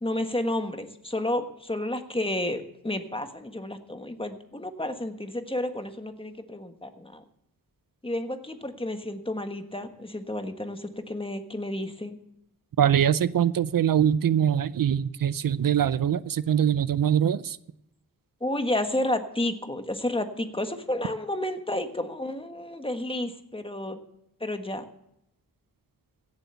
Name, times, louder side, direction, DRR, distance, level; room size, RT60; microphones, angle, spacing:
voice 1, 0.0-7.2 8.0-12.2 18.4-24.0 24.4-24.8, left 1 dB, 15° left, 7 dB, 1.4 m, -31 dB
voice 2, 12.8-17.6, right 9 dB, 70° right, 17 dB, 0.5 m, -23 dB
16.5 x 7.8 x 6.9 m, 0.80 s
wide cardioid pair, 80°, 35 cm